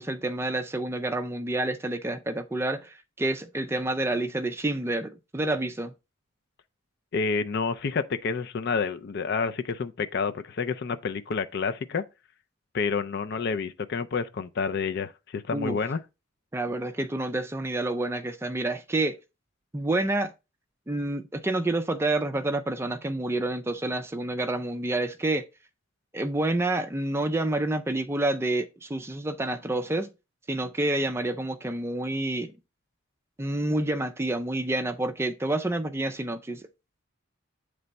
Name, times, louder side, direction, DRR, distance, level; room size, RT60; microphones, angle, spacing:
voice 1, 0.0-5.9 15.5-15.8 16.5-19.2 19.7-20.3 20.9-25.4 26.1-30.1 30.5-32.5 33.4-36.6, right 2 dB, 10° right, 0.4 m, -28 dB
voice 2, 7.1-12.0 12.7-16.0, left 5 dB, 50° left, 0.4 m, -29 dB
7.8 x 3.3 x 4.0 m
head